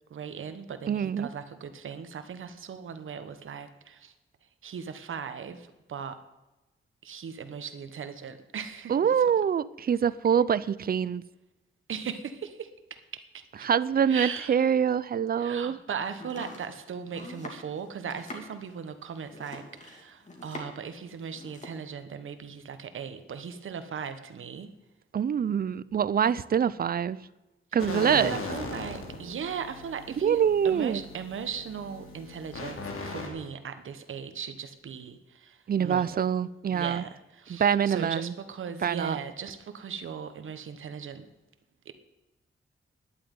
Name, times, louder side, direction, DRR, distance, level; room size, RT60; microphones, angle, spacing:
voice 1, 0.1-4.1 4.6-6.2 7.0-9.3 11.9-13.7 14.1-14.6 15.4-24.7 27.8-36.3 36.7-41.3 41.8-41.9, right 7 dB, 70° right, 1.2 m, -38 dB
voice 2, 0.9-1.3 8.9-11.2 13.6-15.8 25.1-27.2 27.7-28.3 30.2-31.0 35.7-37.0 37.5-38.3 38.8-39.2, right 8 dB, 45° right, 0.5 m, -25 dB
Domestic sounds home sounds, 16.1-20.9 21.2-21.8, left 2 dB, 35° left, 2.7 m, -44 dB
sound 1, 27.8-33.3, left 3 dB, 90° left, 2.9 m, -38 dB
10.5 x 9.0 x 9.3 m
wide cardioid pair, 110°, 21 cm